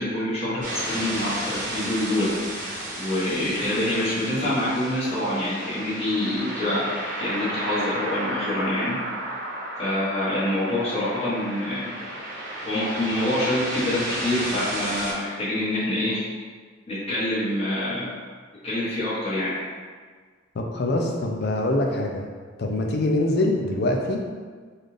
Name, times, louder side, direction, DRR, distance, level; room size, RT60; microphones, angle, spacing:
voice 1, 0.0-2.7 3.0-6.8 7.2-9.0 9.8-11.9 12.6-16.2 16.9-18.1 18.6-19.6, left 1 dB, 30° left, -10 dB, 1.3 m, -26 dB
sound 1, 0.6-15.1, right 1 dB, 45° right, 1.1 m, -33 dB
voice 2, 20.5-22.3 22.6-24.3, left 1 dB, 55° left, 2 dB, 0.5 m, -24 dB
4.0 x 2.5 x 3.3 m, 1.6 s
head